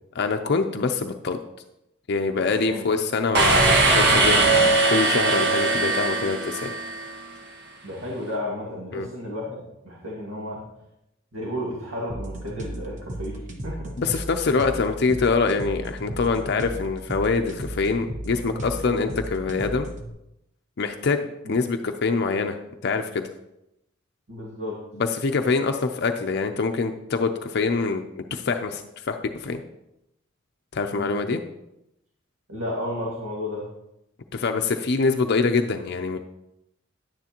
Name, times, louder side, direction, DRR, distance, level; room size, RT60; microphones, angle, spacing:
voice 1, 0.2-1.4 2.1-6.7 8.9-9.1 14.0-19.9 20.8-22.6 22.8-23.3 24.9-29.6 30.7-31.4 34.3-36.2, left 4 dB, 55° left, 5 dB, 0.5 m, -25 dB
sound 1, 3.3-7.1, right 3 dB, 55° right, 1.4 m, -20 dB
voice 2, 7.8-10.6 11.3-14.0 21.4-21.6 24.3-24.8 30.9-31.2 32.5-33.7, left 1 dB, 85° right, -4 dB, 1.9 m, -32 dB
sound 2, 12.1-20.1, right 1 dB, 35° right, 1.2 m, -35 dB
10.5 x 9.4 x 2.9 m, 0.86 s
head